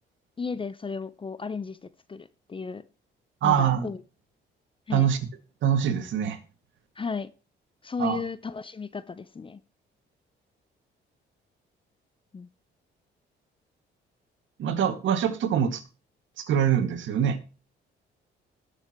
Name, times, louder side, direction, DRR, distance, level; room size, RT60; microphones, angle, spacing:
voice 1, 0.4-2.8 3.4-4.0 4.9-5.1 7.0-7.3 7.8-9.6 12.3-12.5, left 5 dB, 25° left, 0.7 m, -34 dB
voice 2, 3.4-3.9 4.9-5.2 5.6-6.4 8.0-8.2 14.6-15.8 16.4-17.4, right 9 dB, 75° right, 2.0 m, -24 dB
19.5 x 7.2 x 3.0 m
cardioid pair, 90°, 20 cm